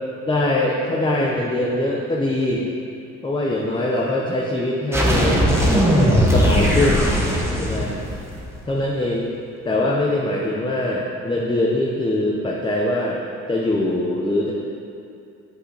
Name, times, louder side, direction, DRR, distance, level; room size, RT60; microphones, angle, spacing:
voice 1, 0.3-2.6 3.2-5.4 5.9-7.1 7.5-7.9 8.7-9.3 9.6-13.2 13.5-14.5, left 1 dB, 15° left, -3 dB, 0.6 m, -22 dB
sound 1, 4.9-8.6, equal, 10° right, 1.0 m, -18 dB
8.1 x 5.1 x 3.3 m, 2.6 s
cardioid pair, 90°, 30 cm